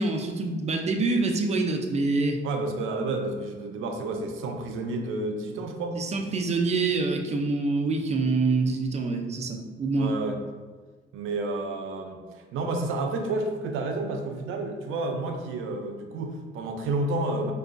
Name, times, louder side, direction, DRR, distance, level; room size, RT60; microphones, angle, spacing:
voice 1, 0.0-2.4 6.0-10.1, right 3 dB, 35° right, 3 dB, 0.5 m, -26 dB
voice 2, 2.4-6.0 10.0-10.4 11.1-12.2 12.5-17.5, right 2 dB, 90° right, 4 dB, 0.5 m, -30 dB
4.5 x 2.3 x 2.5 m, 1.4 s
cardioid pair, 90°, 20 cm